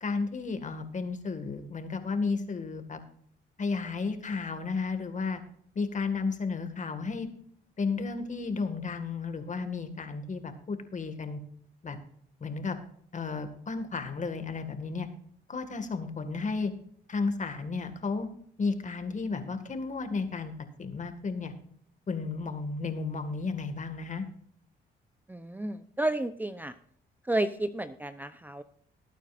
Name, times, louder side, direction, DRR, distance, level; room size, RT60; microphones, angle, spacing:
voice 1, 0.0-3.0 3.6-5.4 5.8-7.3 7.8-11.4 11.8-12.0 12.4-12.8 13.1-15.1 15.5-16.7 17.1-18.3 18.6-20.5 20.8-21.5 22.1-24.3, left 4 dB, 40° left, 8 dB, 1.9 m, -33 dB
voice 2, 25.3-26.7 27.3-28.6, right 1 dB, 10° right, 11 dB, 0.7 m, -31 dB
20.0 x 9.1 x 2.5 m, 0.65 s
cardioid pair, 90°, 20 cm